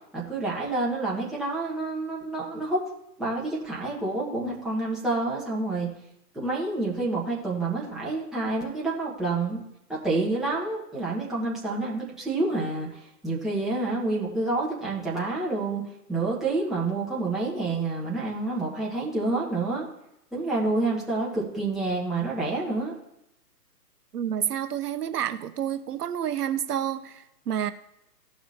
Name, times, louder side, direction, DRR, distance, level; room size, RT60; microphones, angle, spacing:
voice 1, 0.1-2.8 3.2-5.9 6.3-9.6 9.9-15.8 16.1-19.9 20.3-22.9, right 2 dB, ahead, 1.4 m, -28 dB
voice 2, 24.1-27.7, right 9 dB, 70° right, 0.7 m, -29 dB
16.5 x 6.1 x 2.8 m
hypercardioid pair, 140°, 48 cm